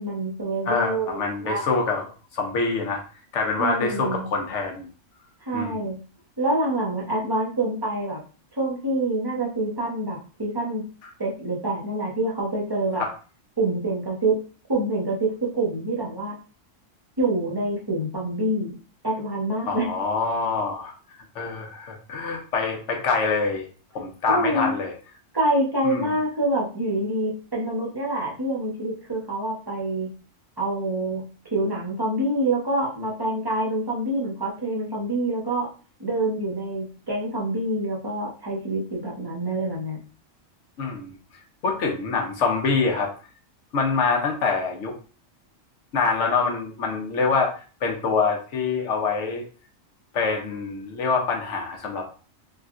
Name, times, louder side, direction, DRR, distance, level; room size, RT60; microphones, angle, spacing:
voice 1, 0.0-1.6 3.6-4.3 5.4-6.0 6.4-8.2 8.6-10.8 11.2-13.0 13.6-14.4 14.7-16.4 17.2-18.7 19.0-19.9 24.3-24.7 25.3-30.1 30.6-31.2 31.5-35.7 36.0-40.0, right 2 dB, 25° right, -3 dB, 0.7 m, -26 dB
voice 2, 0.7-2.1 2.3-3.0 3.3-4.9 5.5-5.9 13.0-13.1 19.7-20.9 21.3-23.6 23.9-24.9 25.8-26.1 40.8-41.1 41.6-43.1 43.7-45.0 45.9-47.5 47.8-49.4 50.1-52.1, left 4 dB, 70° left, 2 dB, 1.0 m, -25 dB
3.6 x 2.4 x 2.4 m, 0.37 s
omnidirectional pair, 1.3 m